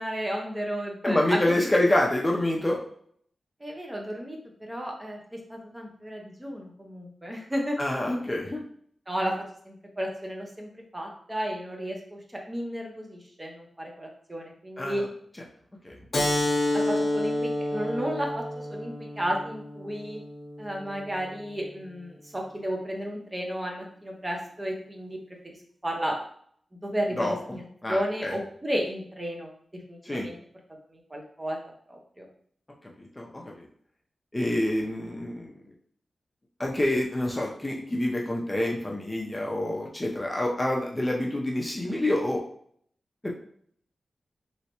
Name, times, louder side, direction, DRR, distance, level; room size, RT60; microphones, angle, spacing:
voice 1, 0.0-1.4 3.6-7.8 9.1-15.0 16.7-20.2 20.6-25.6 25.8-26.2 26.7-27.3 27.6-30.4 30.9-31.6 31.9-32.3, equal, 20° right, 1 dB, 0.8 m, -33 dB
voice 2, 1.0-2.8 7.8-8.6 14.8-15.0 15.8-16.0 27.1-27.6 27.8-28.3 30.1-30.3 33.0-33.6 34.3-35.5 36.6-42.4 43.2-43.3, left 1 dB, 20° left, -1 dB, 0.6 m, -27 dB
Keyboard (musical), 16.1-21.3, left 1 dB, 55° left, 0.8 m, -29 dB
3.1 x 3.0 x 2.9 m, 0.62 s
wide cardioid pair, 80°, 0 cm